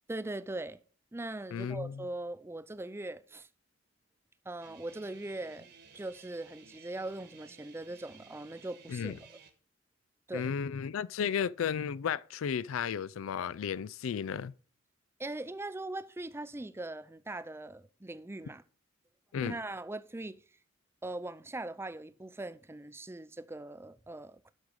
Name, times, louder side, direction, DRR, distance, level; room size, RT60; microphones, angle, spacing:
voice 1, 0.1-0.8 1.1-3.5 4.5-5.7 5.9-9.3 10.3-10.5 15.2-18.6 19.4-20.4 21.0-24.5, right 2 dB, 10° right, 0.5 m, -40 dB
voice 2, 1.5-2.0 8.9-9.2 10.3-14.5 19.3-19.6, left 7 dB, 85° left, 0.4 m, -34 dB
Guitar, 4.6-9.5, right 5 dB, 55° right, 1.5 m, -56 dB
8.5 x 6.4 x 6.3 m
head